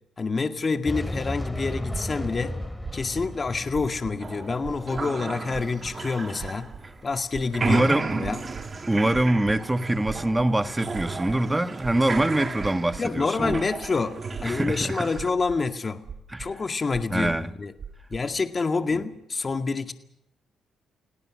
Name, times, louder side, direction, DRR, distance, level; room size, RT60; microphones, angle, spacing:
voice 1, 0.2-2.6 2.9-6.7 7.0-7.8 8.2-8.4 13.0-16.0 16.4-17.7 18.1-19.9, left 4 dB, 35° left, 7 dB, 2.1 m, -27 dB
sound 1, 0.8-8.2 8.5-8.8 12.9-15.0, left 1 dB, 5° left, 2.8 m, -37 dB
sound 2, 1.9-2.3 2.8-3.3 3.7-4.3 4.6-5.1 5.5-6.0 6.4-6.8 7.3-7.8 8.2-8.7 9.1-9.6 10.0-10.6 10.9-11.4 11.8-13.0 13.5-13.9 14.3-14.9 15.1-15.6 16.0-16.5 16.9-17.4 17.8-18.2, right 7 dB, 55° right, 4.1 m, -39 dB
sound 3, 4.2-7.2 7.4-15.3, right 4 dB, 35° right, 2.4 m, -34 dB
voice 2, 7.6-8.2 8.9-13.6 14.4-15.0 16.3-16.5 17.1-17.5, right 1 dB, 10° right, 10 dB, 1.5 m, -24 dB
29.0 x 18.0 x 6.4 m, 0.80 s
cardioid pair, 90°, 0 cm